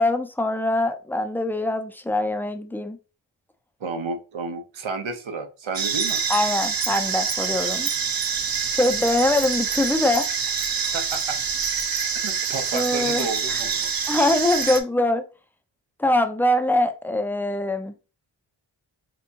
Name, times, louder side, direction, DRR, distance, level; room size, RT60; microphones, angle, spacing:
voice 1, 0.0-3.0 6.3-7.9 8.7-10.3 12.7-13.6 14.1-15.2 16.0-17.9, left 1 dB, 5° left, 0.3 m, -23 dB
voice 2, 3.8-6.2 10.9-11.4 12.2-13.9, right 4 dB, 90° right, 0.7 m, -31 dB
sound 1, 5.7-14.8, right 6 dB, 50° right, 0.6 m, -26 dB
3.4 x 2.9 x 2.7 m
wide cardioid pair, 80°, 46 cm